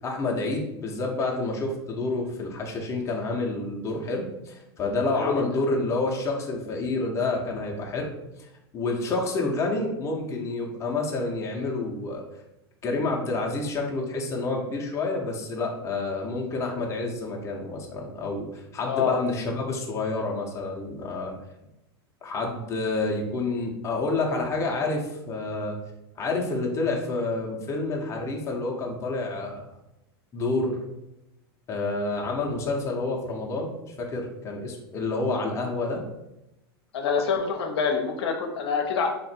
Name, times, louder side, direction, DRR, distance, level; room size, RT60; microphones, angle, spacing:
voice 1, 0.0-8.1 8.7-12.2 12.8-21.3 22.2-25.8 26.2-29.7 30.3-30.8 31.7-36.0, left 3 dB, 20° left, 0 dB, 0.7 m, -28 dB
voice 2, 5.1-5.5 18.9-19.2 36.9-39.2, left 6 dB, 75° left, 3 dB, 0.7 m, -26 dB
2.9 x 2.5 x 4.2 m, 0.89 s
supercardioid pair, 130°, 13 cm